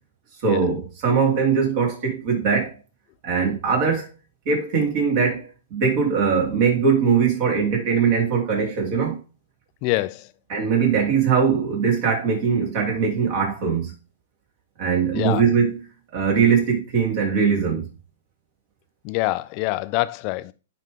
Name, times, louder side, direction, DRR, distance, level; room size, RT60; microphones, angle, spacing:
voice 1, 0.4-2.7 3.2-4.1 4.4-9.2 10.5-13.9 14.8-15.8 16.1-17.8, right 6 dB, 45° right, 3.2 m, -21 dB
voice 2, 9.8-10.3 15.1-15.4 19.0-20.5, left 19 dB, 40° left, 0.5 m, -25 dB
10.0 x 3.6 x 3.6 m
hypercardioid pair, 120°, 0 cm